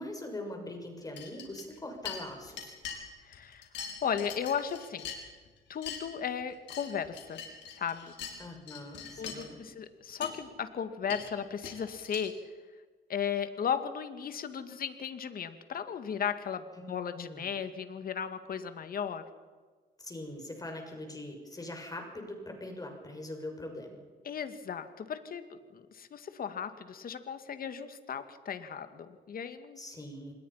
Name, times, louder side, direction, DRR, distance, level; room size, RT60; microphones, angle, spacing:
voice 1, 0.0-2.7 8.4-9.6 16.7-17.5 20.0-24.0 29.8-30.3, left 1 dB, 20° left, 3 dB, 6.5 m, -42 dB
sound 1, 1.1-3.0 3.3-5.5 5.7-6.0 6.4-8.4 8.7-9.5 9.9-10.0 10.2-10.3 11.0-12.3, left 7 dB, 75° left, 5.1 m, -42 dB
voice 2, 3.2-5.1 5.7-7.4 7.8-8.2 9.2-12.3 13.1-19.2 24.2-29.8, left 7 dB, 55° left, 9 dB, 2.2 m, -36 dB
27.0 x 21.0 x 5.9 m, 1.4 s
cardioid pair, 90°, 18 cm